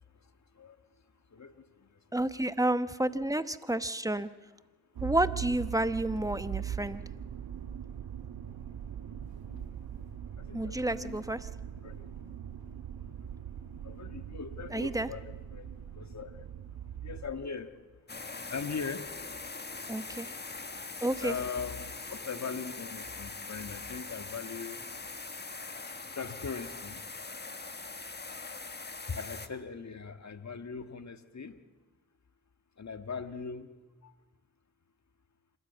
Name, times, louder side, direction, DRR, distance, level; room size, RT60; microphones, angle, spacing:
voice 1, 1.3-1.6 9.5-9.7 10.4-11.6 11.8-12.1 13.8-15.7 15.9-16.3 17.0-17.7 18.5-19.1 21.2-24.8 26.1-27.0 29.1-31.5 32.8-33.7 34.0-34.1, left 5 dB, 50° left, 8 dB, 1.6 m, -40 dB
voice 2, 2.1-4.3 5.0-7.0 10.5-11.4 14.7-15.1 19.9-20.3 21.0-21.3, right 1 dB, 10° right, 12 dB, 1.0 m, -30 dB
Motor vehicle (road), 5.0-17.3, right 9 dB, 85° right, 1.2 m, -41 dB
sound 1, 18.1-29.5, left 3 dB, 25° left, 1.5 m, -42 dB
27.0 x 13.0 x 8.6 m, 1.2 s
supercardioid pair, 45°, 37 cm